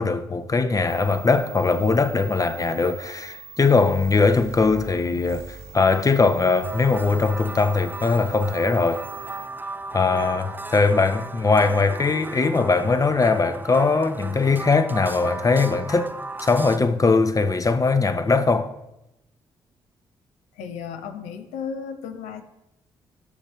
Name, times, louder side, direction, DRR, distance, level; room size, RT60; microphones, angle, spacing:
voice 1, 0.0-9.0 9.9-16.2 16.4-18.7, left 4 dB, 30° left, 0.7 m, -20 dB
sound 1, 0.9-9.5, right 5 dB, 85° right, 2.5 m, -43 dB
sound 2, 6.6-16.8, right 2 dB, 15° right, 0.6 m, -36 dB
voice 2, 20.5-22.4, left 6 dB, 80° left, 0.7 m, -34 dB
12.0 x 6.4 x 3.1 m
hypercardioid pair, 45°, 12 cm